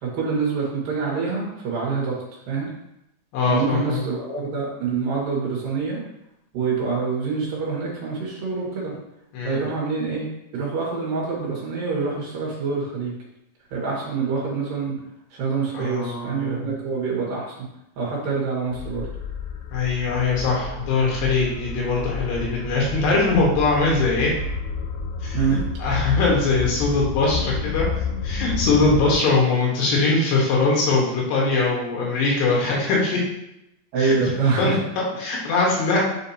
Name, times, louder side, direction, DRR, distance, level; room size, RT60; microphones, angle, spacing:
voice 1, 0.0-2.7 3.5-6.0 6.5-8.9 9.4-13.1 13.7-15.0 15.3-17.5 18.0-19.1 25.3-25.6 33.9-34.8, right 5 dB, 60° right, -4 dB, 3.2 m, -26 dB
voice 2, 3.3-4.0 9.3-9.6 15.7-16.7 19.7-24.3 25.2-27.9 28.2-33.2 34.0-34.3 34.6-36.0, left 3 dB, 70° left, -4 dB, 3.3 m, -22 dB
sound 1, 18.7-29.2, left 4 dB, 90° left, 3.0 m, -30 dB
7.5 x 5.1 x 2.8 m, 0.84 s
omnidirectional pair, 5.1 m